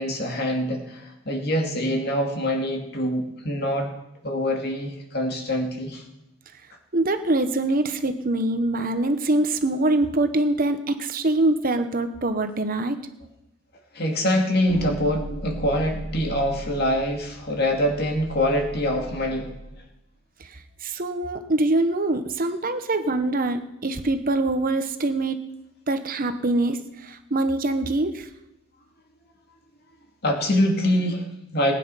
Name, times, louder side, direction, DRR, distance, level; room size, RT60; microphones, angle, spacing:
voice 1, 0.0-3.9 4.2-6.0 13.9-19.5 30.2-31.7, equal, 50° left, 2 dB, 2.4 m, -24 dB
voice 2, 6.9-13.0 20.4-25.4 25.9-28.3, right 2 dB, 40° right, 8 dB, 1.0 m, -24 dB
sound 1, 14.7-19.8, equal, 75° left, 4.2 m, -37 dB
19.5 x 9.5 x 5.6 m, 0.87 s
head